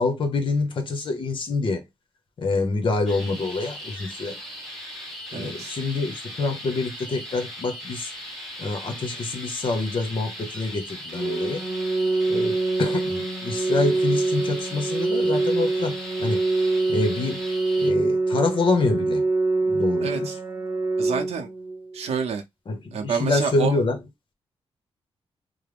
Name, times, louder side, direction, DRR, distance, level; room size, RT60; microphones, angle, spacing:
voice 1, 0.0-1.9 2.4-4.4 5.3-8.1 8.6-11.6 12.3-16.4 16.9-17.4 17.8-19.2 19.6-20.3 22.7-24.0, left 3 dB, 50° left, 1.0 m, -26 dB
sound 1, 3.1-17.9, equal, ahead, 1.2 m, -38 dB
voice 2, 5.3-5.7 20.0-20.3 21.0-21.5 21.9-22.4 22.9-23.8, right 6 dB, 90° right, 0.7 m, -28 dB
Organ, 11.1-22.1, right 3 dB, 15° right, 0.8 m, -25 dB
3.2 x 2.1 x 3.4 m
wide cardioid pair, 110°, 11 cm